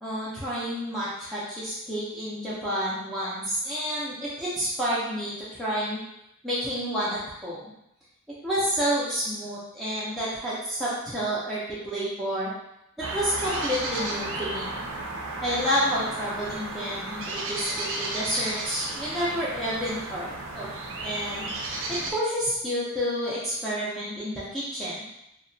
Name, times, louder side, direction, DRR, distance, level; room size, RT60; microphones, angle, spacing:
voice 1, 0.0-6.0 6.4-7.6 8.4-12.5 13.1-14.7 15.4-20.7 21.0-21.5 21.9-25.0, equal, ahead, -10 dB, 0.4 m, -29 dB
sound 1, 13.0-22.1, right 2 dB, 60° right, 0.4 m, -33 dB
2.7 x 2.1 x 2.6 m, 0.82 s
head